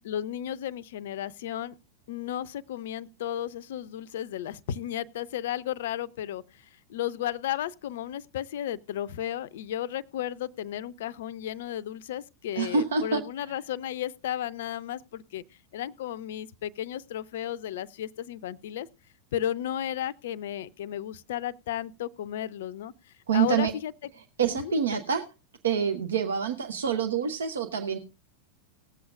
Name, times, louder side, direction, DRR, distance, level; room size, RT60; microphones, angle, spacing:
voice 1, 0.0-1.7 2.1-15.4 15.7-18.9 19.3-24.1 24.5-25.0, left 11 dB, 55° left, 0.5 m, -34 dB
voice 2, 12.6-13.2 23.3-23.7 24.4-25.2 25.6-28.0, right 6 dB, 65° right, 0.9 m, -26 dB
19.5 x 7.7 x 2.5 m
figure-of-eight pair, 90°, 0 cm